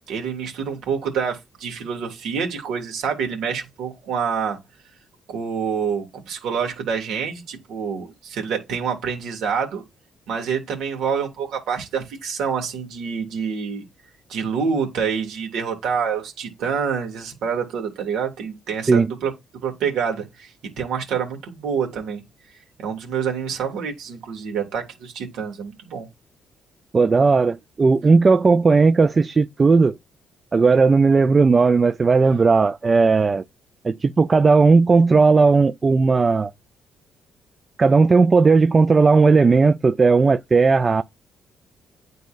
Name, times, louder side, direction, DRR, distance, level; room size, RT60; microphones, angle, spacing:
voice 1, 0.1-4.6 5.3-9.8 10.3-13.8 14.3-19.3 19.6-20.5 20.8-22.2 22.8-26.1, right 6 dB, 80° right, 2.0 m, -27 dB
voice 2, 26.9-30.0 30.5-33.4 33.8-36.5 37.8-41.0, right 4 dB, 35° right, 0.3 m, -16 dB
9.3 x 4.0 x 2.5 m
cardioid pair, 90°, 0 cm